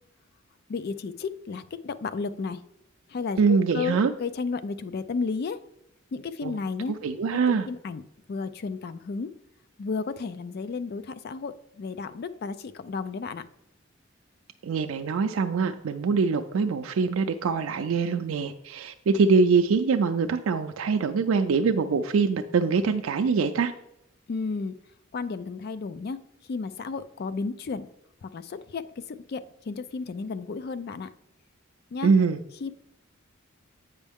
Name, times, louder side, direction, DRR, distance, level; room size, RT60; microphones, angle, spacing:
voice 1, 0.7-2.6 3.1-5.6 6.1-7.0 7.3-8.0 8.3-9.3 9.8-13.4 24.3-24.7 25.1-26.2 26.5-27.9 28.2-31.1 31.9-32.1 32.6-32.7, left 4 dB, 50° left, 13 dB, 0.4 m, -33 dB
voice 2, 3.4-4.1 6.4-6.6 7.0-7.7 14.6-23.7 32.0-32.4, right 5 dB, 90° right, 6 dB, 0.4 m, -24 dB
8.2 x 5.3 x 3.5 m, 0.84 s
head